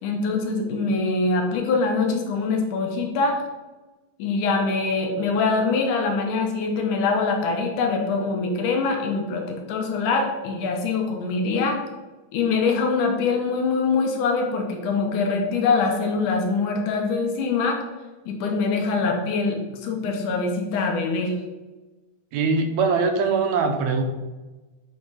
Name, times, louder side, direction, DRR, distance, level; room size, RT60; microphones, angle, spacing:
voice 1, 0.0-3.4 4.2-11.8 12.3-17.8 18.3-21.3, left 4 dB, 80° left, 2 dB, 2.5 m, -24 dB
voice 2, 22.3-24.0, right 4 dB, 75° right, 5 dB, 1.9 m, -22 dB
7.1 x 4.0 x 4.7 m, 1.2 s
omnidirectional pair, 3.5 m